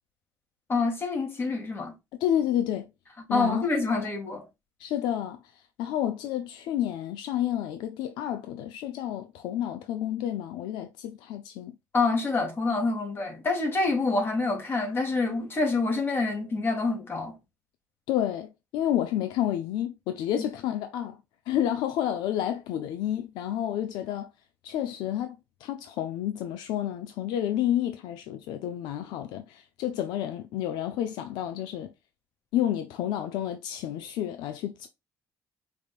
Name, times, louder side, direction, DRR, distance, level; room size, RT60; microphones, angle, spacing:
voice 1, 0.7-1.9 3.3-4.4 11.9-17.4 20.3-20.5, left 3 dB, 30° left, 1.9 m, -27 dB
voice 2, 2.1-2.9 3.3-3.6 4.8-5.4 5.8-11.7 18.1-21.2 21.5-24.3 24.6-25.4 25.6-31.9 32.5-34.9, left 11 dB, 85° left, 0.6 m, -30 dB
5.0 x 3.4 x 2.4 m
cardioid pair, 110°, 7 cm